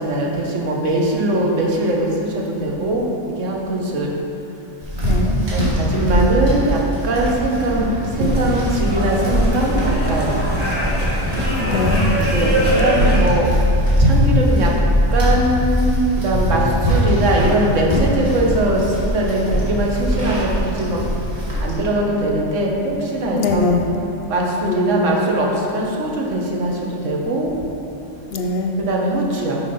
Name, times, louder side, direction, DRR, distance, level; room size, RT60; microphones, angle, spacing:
voice 1, 0.0-3.1 3.4-4.1 5.5-7.9 8.2-10.3 12.3-13.5 14.0-14.7 15.1-21.0 21.6-23.7 24.3-27.5 28.9-29.6, right 1 dB, 85° right, -2 dB, 1.3 m, -21 dB
sound 1, 4.8-21.8, equal, 60° right, 1.8 m, -21 dB
voice 2, 5.0-5.4 11.5-12.1 23.3-23.9 24.6-25.4 28.3-28.8, left 2 dB, 65° left, 3 dB, 0.7 m, -22 dB
sound 2, 8.2-13.2, right 1 dB, 10° right, 1.2 m, -23 dB
6.2 x 4.4 x 5.3 m, 2.9 s
omnidirectional pair, 1.3 m